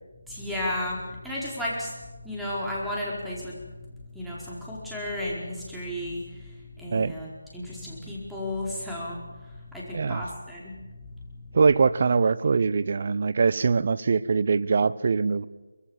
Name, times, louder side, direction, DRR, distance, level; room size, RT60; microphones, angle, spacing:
voice 1, 0.3-11.6, left 1 dB, ahead, -7 dB, 4.7 m, -34 dB
voice 2, 9.9-10.2 11.5-15.4, right 5 dB, 45° right, 17 dB, 0.9 m, -22 dB
24.0 x 21.5 x 7.4 m, 1.2 s
figure-of-eight pair, 165°, 0 cm